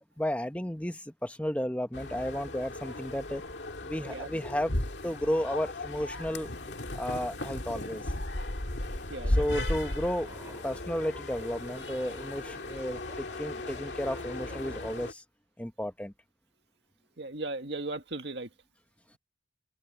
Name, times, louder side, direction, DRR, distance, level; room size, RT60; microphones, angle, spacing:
voice 1, 0.2-3.4 3.8-4.7 5.0-8.1 9.3-15.2 15.6-16.1, equal, 5° left, 1.0 m, -33 dB
sound 1, 1.9-15.1, left 1 dB, 65° left, 2.3 m, -36 dB
voice 2, 9.1-9.6 17.2-18.5, right 2 dB, 65° right, 2.0 m, -37 dB
sound 2, 9.6-15.1, right 1 dB, 15° right, 3.0 m, -52 dB
head